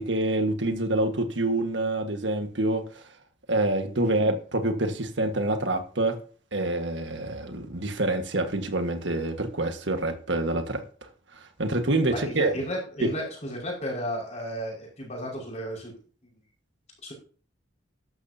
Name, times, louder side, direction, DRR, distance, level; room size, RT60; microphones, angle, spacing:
voice 1, 0.0-2.8 3.5-6.1 6.5-10.8 11.6-12.5 13.0-13.1, right 2 dB, 75° right, 1.6 m, -26 dB
voice 2, 12.1-15.9 16.2-16.3 17.0-17.1, equal, 35° left, 5.4 m, -33 dB
13.5 x 11.5 x 2.8 m
head